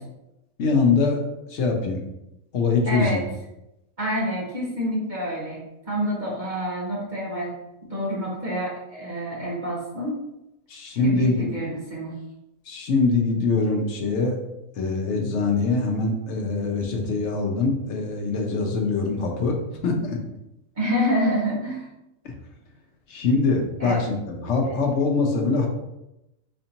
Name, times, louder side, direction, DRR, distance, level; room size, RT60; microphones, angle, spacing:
voice 1, 0.6-1.2 1.5-2.0 2.5-3.2 10.7-11.4 12.7-14.4 14.8-19.6 19.8-20.2 23.1-25.7, left 3 dB, 60° left, 1 dB, 0.9 m, -23 dB
voice 2, 2.9-3.2 4.0-7.5 7.9-10.2 11.0-12.1 20.7-21.9 23.8-24.0 24.6-24.7, equal, 40° right, -7 dB, 0.9 m, -27 dB
4.2 x 2.7 x 2.8 m, 0.90 s
omnidirectional pair, 1.5 m